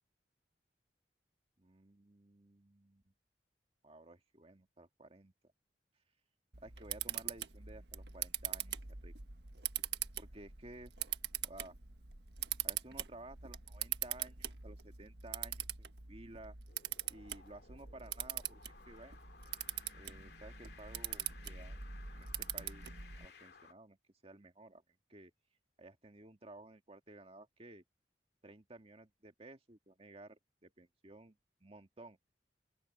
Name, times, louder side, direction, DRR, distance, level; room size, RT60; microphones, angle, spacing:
voice 1, 1.6-3.1 3.8-5.3 6.6-8.8 9.0-9.1 10.2-10.9 11.4-11.8 12.6-16.6 17.1-18.6 18.9-19.2 19.9-22.9 23.2-24.0 24.2-24.8 25.1-25.3 25.8-27.8 28.4-32.2, right 2 dB, 35° right, 2.0 m, -55 dB
Camera, 6.5-23.3, right 10 dB, 75° right, 1.5 m, -43 dB
sound 1, 16.7-23.7, left 5 dB, 65° left, 2.3 m, -59 dB
open air
head